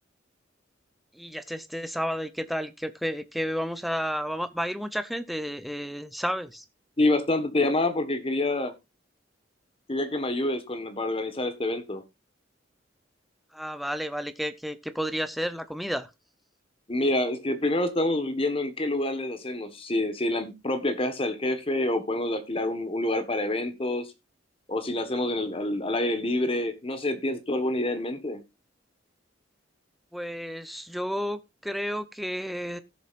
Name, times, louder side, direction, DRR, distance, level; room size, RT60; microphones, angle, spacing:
voice 1, 1.1-6.6 13.5-16.1 30.1-32.8, equal, ahead, 0.6 m, -31 dB
voice 2, 7.0-8.7 9.9-12.0 16.9-24.1 24.7-28.4, left 1 dB, 30° left, 1.4 m, -27 dB
16.5 x 7.1 x 2.5 m
head